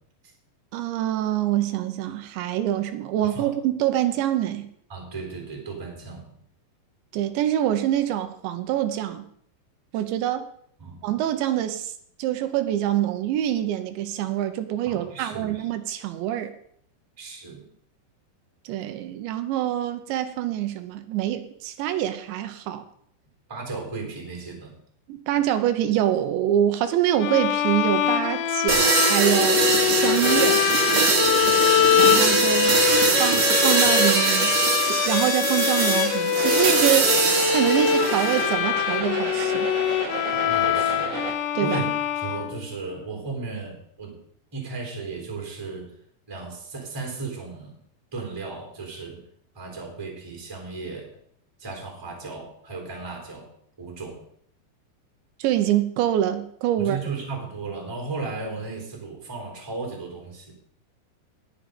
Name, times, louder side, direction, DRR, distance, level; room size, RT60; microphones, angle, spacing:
voice 1, 0.7-4.7 7.1-9.3 9.9-10.4 11.0-11.9 12.2-16.5 18.7-22.8 25.1-30.6 31.9-32.8 33.2-34.5 34.8-37.2 37.5-39.7 41.6-41.8 55.4-57.0, right 12 dB, 80° right, 9 dB, 3.2 m, -25 dB
voice 2, 4.9-6.3 10.8-11.0 14.8-15.6 17.2-17.7 23.5-24.8 40.3-41.1 41.6-44.2 44.5-45.9 46.3-47.8 48.1-49.3 49.5-51.1 51.6-53.5 53.8-54.2 56.8-60.5, right 3 dB, 5° right, 1 dB, 3.0 m, -35 dB
sound 1, 27.2-42.9, left 10 dB, 80° left, 3.0 m, -24 dB
sound 2, 28.7-38.5, right 4 dB, 45° right, 2.5 m, -22 dB
sound 3, 36.3-41.3, right 6 dB, 60° right, 2.3 m, -32 dB
19.0 x 6.7 x 5.2 m, 0.65 s
omnidirectional pair, 5.2 m